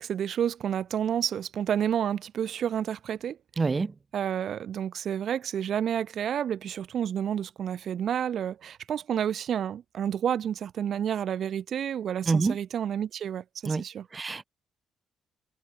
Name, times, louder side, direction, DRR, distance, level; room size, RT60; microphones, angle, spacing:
voice 1, 0.0-3.4 4.1-14.1, right 9 dB, 60° right, 6.3 m, -30 dB
voice 2, 3.6-3.9 12.3-12.6 13.7-13.8 14.1-14.4, right 4 dB, 30° right, 5.6 m, -26 dB
cardioid pair, 90°, 0 cm